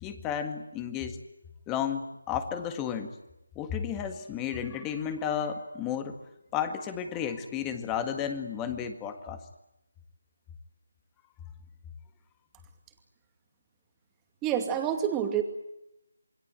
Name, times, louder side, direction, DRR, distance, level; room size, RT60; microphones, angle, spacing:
voice 1, 0.0-1.2 1.7-3.2 3.6-6.2 6.5-9.4, left 8 dB, 10° left, 8 dB, 1.8 m, -32 dB
voice 2, 14.4-15.4, right 9 dB, 10° right, 5 dB, 2.5 m, -27 dB
28.0 x 21.0 x 9.1 m, 0.86 s
figure-of-eight pair, 165°, 0 cm